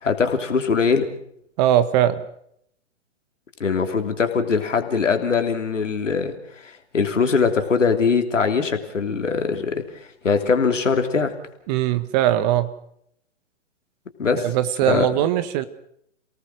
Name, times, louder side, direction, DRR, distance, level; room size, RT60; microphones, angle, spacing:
voice 1, 0.0-1.1 3.6-6.3 6.6-9.8 10.2-11.3 14.2-14.5 14.8-15.1, left 5 dB, 80° left, 6 dB, 3.3 m, -21 dB
voice 2, 1.6-2.2 11.7-12.7 14.3-15.7, right 12 dB, 35° right, 13 dB, 1.5 m, -20 dB
28.5 x 18.5 x 6.4 m, 0.70 s
figure-of-eight pair, 125°, 37 cm